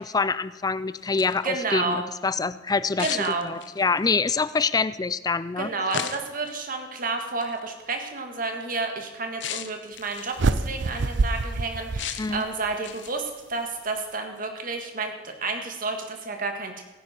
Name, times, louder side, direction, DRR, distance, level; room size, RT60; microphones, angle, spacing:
voice 1, 0.0-5.7 12.2-12.4, left 4 dB, 20° left, 16 dB, 0.4 m, -26 dB
sound 1, 1.0-1.5 3.0-3.9 5.9-6.5 7.4-7.6 9.4-10.5 12.0-12.4 12.8-13.3, left 9 dB, 80° left, 0.7 m, -35 dB
voice 2, 1.4-2.1 3.0-3.6 5.6-16.8, right 3 dB, 50° right, 4 dB, 1.8 m, -30 dB
sound 2, 10.4-12.7, right 3 dB, 75° right, 0.6 m, -26 dB
16.5 x 9.7 x 4.4 m, 1.2 s
head